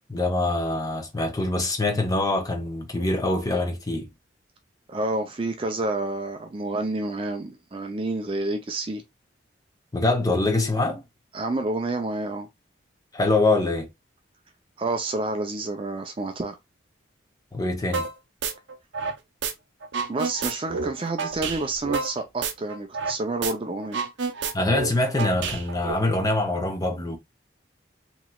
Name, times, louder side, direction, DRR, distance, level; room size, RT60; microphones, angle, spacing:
voice 1, 0.1-4.1 9.9-11.0 13.1-13.9 17.5-18.1 24.5-27.2, left 2 dB, 20° left, 0.6 m, -24 dB
voice 2, 4.9-9.0 11.3-12.5 14.8-16.6 20.1-24.0, right 2 dB, 25° right, 0.4 m, -29 dB
sound 1, 17.9-18.1 18.4-19.5 19.8-23.2 23.4-23.5 23.8-25.9, right 5 dB, 70° right, 0.6 m, -29 dB
3.0 x 2.8 x 2.2 m
head